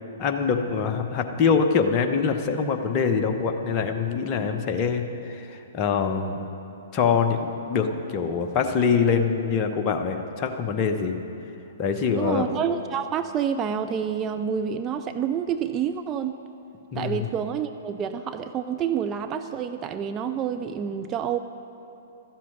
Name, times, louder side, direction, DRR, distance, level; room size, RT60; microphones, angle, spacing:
voice 1, 0.2-6.4 6.9-11.1 11.8-12.5 16.9-17.3, left 6 dB, 30° left, 5 dB, 1.0 m, -24 dB
voice 2, 12.1-16.4 17.0-21.4, right 8 dB, 20° right, 8 dB, 0.4 m, -28 dB
13.0 x 7.5 x 9.3 m, 2.9 s
figure-of-eight pair, 115°, 0 cm